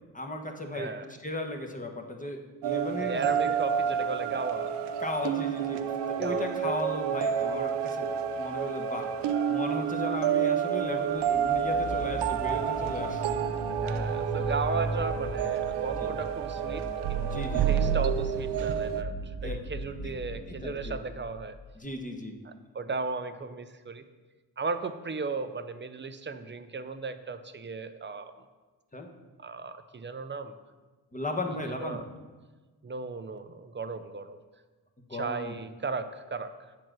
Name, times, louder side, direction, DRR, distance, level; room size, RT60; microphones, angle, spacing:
voice 1, 0.1-0.9 1.2-3.6 4.3-4.4 5.0-8.1 8.4-9.1 9.5-13.4 16.0-16.1 17.2-17.8 19.4-19.5 20.0-20.1 20.5-21.0 21.8-22.4 28.9-29.1 31.1-32.0 35.1-35.6, left 2 dB, 20° left, 2 dB, 1.1 m, -36 dB
voice 2, 0.7-1.1 3.0-4.7 6.2-6.8 10.0-10.3 13.8-21.6 22.4-24.0 24.6-28.4 29.4-30.6 31.8-32.1 32.8-34.4 35.1-36.5, right 4 dB, 30° right, 10 dB, 0.5 m, -36 dB
sound 1, 2.6-19.0, right 8 dB, 90° right, 0.5 m, -29 dB
sound 2, 11.2-21.7, right 1 dB, 80° left, 1.9 m, -38 dB
7.7 x 4.6 x 6.1 m, 1.3 s
cardioid pair, 65°, 40 cm